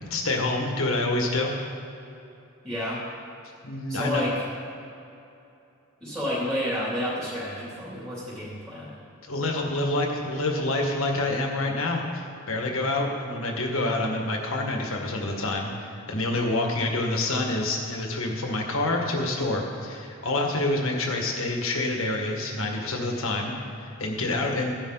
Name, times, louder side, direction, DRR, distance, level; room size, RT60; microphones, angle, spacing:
voice 1, 0.0-1.5 3.6-4.2 9.3-24.8, left 2 dB, 70° left, 1 dB, 1.7 m, -27 dB
voice 2, 2.6-3.0 3.9-4.4 6.0-8.9, left 1 dB, 10° right, -10 dB, 3.0 m, -30 dB
15.5 x 10.5 x 4.0 m, 2.8 s
head